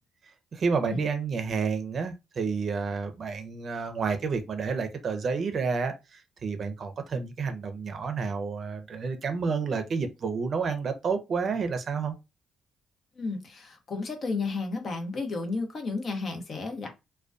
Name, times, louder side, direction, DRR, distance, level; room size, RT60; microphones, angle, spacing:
voice 1, 0.5-12.1, right 5 dB, 50° right, 0.5 m, -30 dB
voice 2, 13.2-16.9, left 3 dB, 50° left, 0.7 m, -32 dB
2.2 x 2.2 x 2.5 m
cardioid pair, 90°, 0 cm